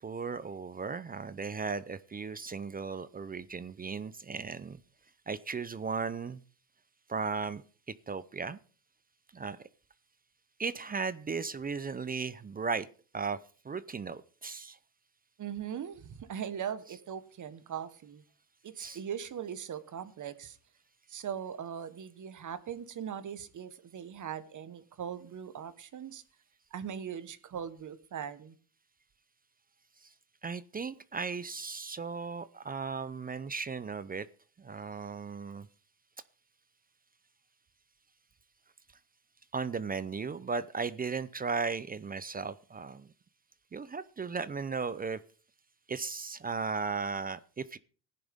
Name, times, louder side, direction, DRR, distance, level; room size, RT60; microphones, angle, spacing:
voice 1, 0.0-4.8 5.3-6.4 7.1-8.6 9.3-9.6 10.6-12.9 13.1-13.4 13.6-14.8 18.8-19.0 30.0-30.1 30.4-34.3 34.6-35.7 39.5-43.1 43.7-45.2 45.9-47.8, right 5 dB, 20° right, 0.5 m, -36 dB
voice 2, 15.4-18.2 18.6-20.6 21.1-26.2 26.7-28.6, right 8 dB, 40° right, 1.3 m, -40 dB
15.5 x 10.0 x 3.6 m
supercardioid pair, 95°, 46 cm